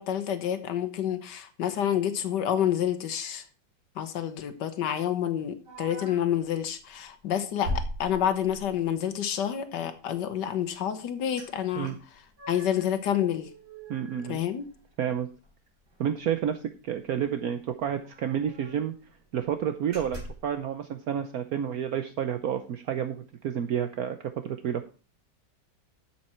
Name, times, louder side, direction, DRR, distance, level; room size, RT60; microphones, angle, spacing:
voice 1, 0.0-3.4 4.0-11.9 12.5-13.5 14.3-14.7, left 10 dB, 85° left, 9 dB, 1.6 m, -28 dB
sound 1, 5.7-6.4 6.9-7.1 7.6-8.8 11.4-11.5 11.8-12.9 13.3-15.1 15.4-15.5 15.9-16.1 17.2-17.3 17.5-17.6 18.0-18.9 19.4-19.5 19.9-20.5, equal, 85° right, 4.0 m, -39 dB
voice 2, 13.9-14.4 15.0-15.3 16.0-18.9 19.3-24.8, right 9 dB, 65° right, 8 dB, 1.1 m, -30 dB
12.0 x 7.5 x 4.4 m, 0.35 s
omnidirectional pair, 1.8 m